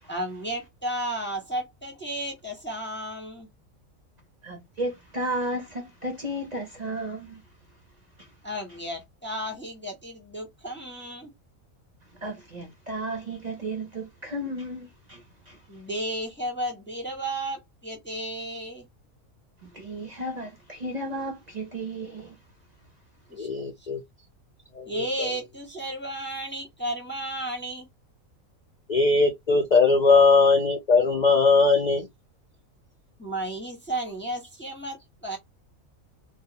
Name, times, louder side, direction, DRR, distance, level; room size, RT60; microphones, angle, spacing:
voice 1, 0.1-3.5 8.4-11.3 15.7-18.8 23.3-23.5 24.8-27.9 33.2-35.4, right 1 dB, 15° left, 0.4 m, -33 dB
voice 2, 4.4-7.4 12.2-15.6 19.6-22.4, right 1 dB, 40° right, 0.6 m, -34 dB
voice 3, 23.4-24.0 24.7-25.3 28.9-32.1, left 4 dB, 75° left, 0.4 m, -20 dB
2.3 x 2.2 x 2.8 m
omnidirectional pair, 1.4 m